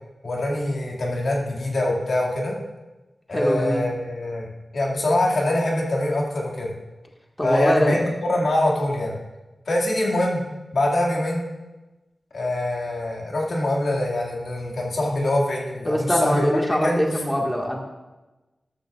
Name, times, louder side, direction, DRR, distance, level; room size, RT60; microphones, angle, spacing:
voice 1, 0.2-2.6 3.3-4.5 4.7-6.7 7.4-9.2 9.7-10.4 10.7-11.5 12.3-17.0, left 1 dB, 80° left, -2 dB, 2.3 m, -24 dB
voice 2, 3.3-3.8 7.4-8.0 15.8-17.8, equal, 5° left, -1 dB, 1.8 m, -22 dB
13.5 x 12.5 x 2.5 m, 1.1 s
wide cardioid pair, 80°, 0 cm